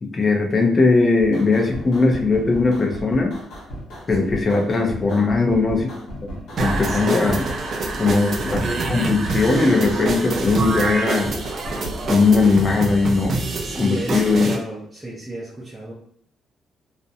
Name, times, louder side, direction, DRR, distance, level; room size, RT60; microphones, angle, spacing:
voice 1, 0.0-3.4 4.1-5.9 6.6-7.4 8.0-11.3 12.1-13.4 13.8-14.5, left 3 dB, 35° left, 2 dB, 0.6 m, -19 dB
sound 1, 1.2-13.4, equal, 80° left, 0.9 m, -36 dB
voice 2, 4.1-4.4 6.9-7.6 13.6-15.9, right 2 dB, 15° right, -6 dB, 0.7 m, -33 dB
sound 2, 6.6-14.6, right 3 dB, 55° right, 0.4 m, -26 dB
2.5 x 2.1 x 2.7 m, 0.65 s
cardioid pair, 90°, 0 cm